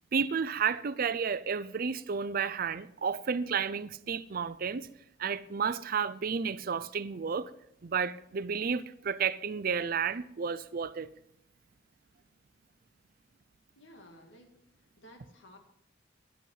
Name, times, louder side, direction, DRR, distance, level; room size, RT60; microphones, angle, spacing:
voice 1, 0.1-4.9 5.2-7.5 7.8-11.1, right 6 dB, 50° right, 0.5 m, -32 dB
voice 2, 13.8-14.6 15.0-15.6, equal, 80° left, 2.1 m, -54 dB
11.0 x 8.4 x 5.5 m
head